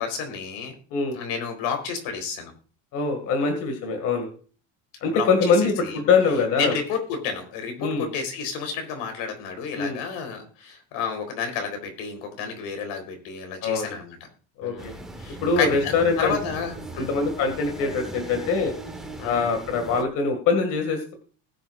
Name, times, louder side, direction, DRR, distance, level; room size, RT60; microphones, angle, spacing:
voice 1, 0.0-0.7 1.1-2.5 5.1-5.5 5.8-6.0 6.6-14.2 14.6-17.1 19.2-19.4, left 6 dB, 75° left, 6 dB, 4.1 m, -31 dB
voice 2, 2.9-4.3 5.0-6.7 7.8-8.1 9.8-10.0 13.6-14.0 14.6-14.9 15.4-16.3 17.0-18.7 19.2-21.1, left 4 dB, 50° left, 5 dB, 2.3 m, -23 dB
sound 1, 14.8-20.0, right 2 dB, ahead, 1.3 m, -38 dB
20.5 x 7.7 x 2.5 m, 0.40 s
cardioid pair, 160°, 39 cm